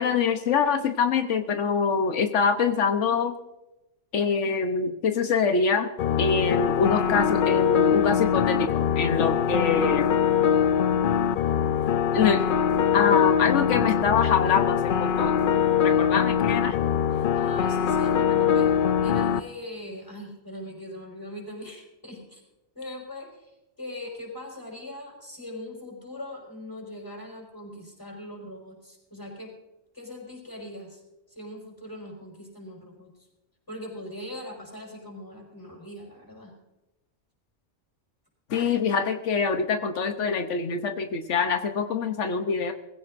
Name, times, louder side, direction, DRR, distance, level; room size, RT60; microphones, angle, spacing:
voice 1, 0.0-3.4 4.1-5.9 6.2-10.1 12.1-12.4 12.9-15.4 15.8-16.8 38.5-42.7, left 5 dB, 90° left, 6 dB, 1.3 m, -24 dB
sound 1, 6.0-19.4, left 8 dB, 55° left, 0.6 m, -23 dB
voice 2, 17.1-22.4 22.7-29.5 29.9-31.0 31.4-33.1 33.7-36.5, left 1 dB, 15° left, -2 dB, 5.4 m, -41 dB
21.0 x 16.0 x 2.6 m, 0.96 s
omnidirectional pair, 1.2 m